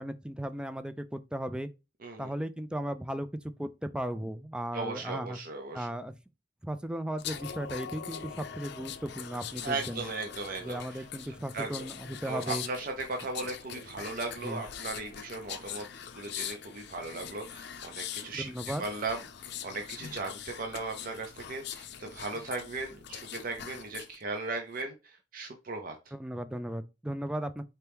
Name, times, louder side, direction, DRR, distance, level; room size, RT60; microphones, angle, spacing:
voice 1, 0.0-1.7 2.2-3.3 3.6-5.4 5.7-6.1 6.6-10.0 10.6-12.6 14.4-14.6 18.3-18.8 26.1-27.6, right 1 dB, 5° right, 0.3 m, -36 dB
voice 2, 2.0-2.3 4.7-5.9 9.6-11.0 11.5-11.9 12.2-15.9 16.1-18.5 18.8-26.0, right 3 dB, 50° right, 0.7 m, -37 dB
sound 1, 7.2-24.2 24.6-24.8, left 8 dB, 65° left, 0.5 m, -42 dB
4.4 x 2.9 x 3.4 m
head